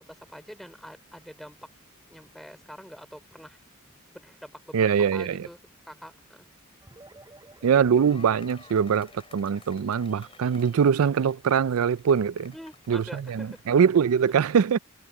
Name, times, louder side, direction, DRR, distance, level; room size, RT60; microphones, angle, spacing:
voice 1, 0.3-1.6 2.1-3.6 4.1-5.6 5.9-6.4 12.5-13.6, equal, ahead, 4.9 m, -45 dB
voice 2, 4.7-5.5 7.6-12.5 12.9-14.8, right 7 dB, 75° right, 0.4 m, -23 dB
sound 1, 6.8-11.6, right 2 dB, 15° right, 3.9 m, -55 dB
sound 2, 7.5-14.1, left 4 dB, 25° left, 4.1 m, -54 dB
head